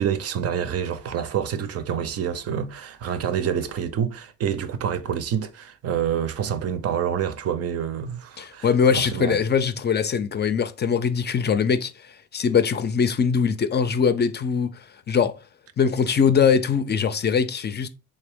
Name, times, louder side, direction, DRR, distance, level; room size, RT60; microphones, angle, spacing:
voice 1, 0.0-9.4, right 8 dB, 55° right, 0.5 m, -27 dB
voice 2, 8.4-15.3 15.8-17.9, left 6 dB, 35° left, 0.4 m, -22 dB
3.3 x 2.6 x 3.5 m
supercardioid pair, 70°, 30 cm